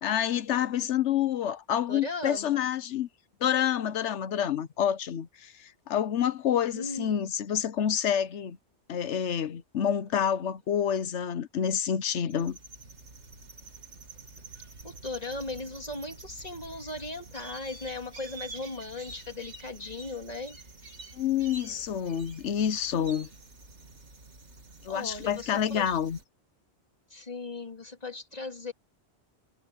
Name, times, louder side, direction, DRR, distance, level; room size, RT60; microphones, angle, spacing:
voice 1, 0.0-3.1 3.4-8.6 8.9-12.6 21.2-23.3 24.8-26.2, left 9 dB, 90° left, 1.2 m, -28 dB
voice 2, 1.9-2.7 6.7-7.3 14.8-20.6 21.7-21.8 24.9-26.0 27.1-28.7, left 2 dB, 35° left, 2.3 m, -38 dB
sound 1, 12.3-26.2, right 3 dB, 85° right, 2.9 m, -48 dB
omnidirectional pair, 1.1 m